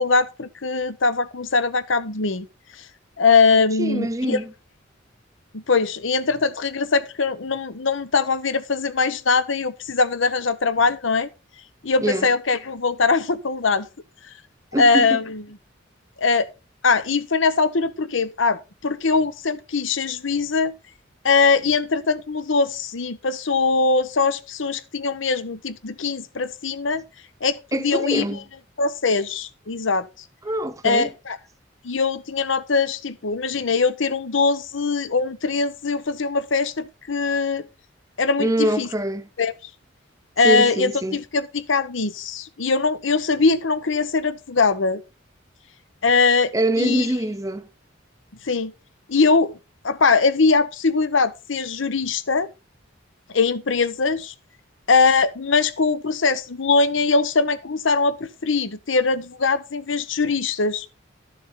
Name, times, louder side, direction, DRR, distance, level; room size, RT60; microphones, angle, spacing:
voice 1, 0.0-2.5 2.8-2.9 3.2-4.4 5.5-11.3 11.8-13.9 14.8-15.4 16.2-16.5 16.8-20.7 21.2-27.0 27.4-28.3 28.8-30.1 30.8-31.4 31.8-37.7 38.2-38.9 39.4-39.5 40.4-45.0 46.0-47.1 48.4-48.7 49.1-49.5 49.8-52.5 53.3-54.3 54.9-60.9, left 4 dB, 70° left, 0.9 m, -21 dB
voice 2, 3.8-4.5 12.0-12.3 14.7-15.2 27.7-28.4 30.4-31.1 38.4-39.3 40.4-41.2 46.5-47.7, right 1 dB, 15° right, 0.8 m, -24 dB
13.0 x 7.1 x 4.1 m
head